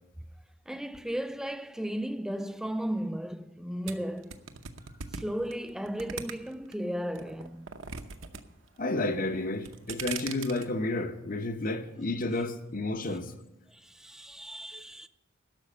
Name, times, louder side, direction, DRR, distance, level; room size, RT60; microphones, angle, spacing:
voice 1, 0.7-4.4 5.1-7.7 13.0-13.2 13.7-15.1, equal, ahead, 0.3 m, -35 dB
sound 1, 3.9-6.7 7.1-8.4 8.7-9.2 9.5-10.7, right 6 dB, 70° right, 0.8 m, -39 dB
voice 2, 8.8-13.3 14.7-14.8, left 2 dB, 40° left, 0.9 m, -31 dB
12.0 x 6.5 x 8.7 m
head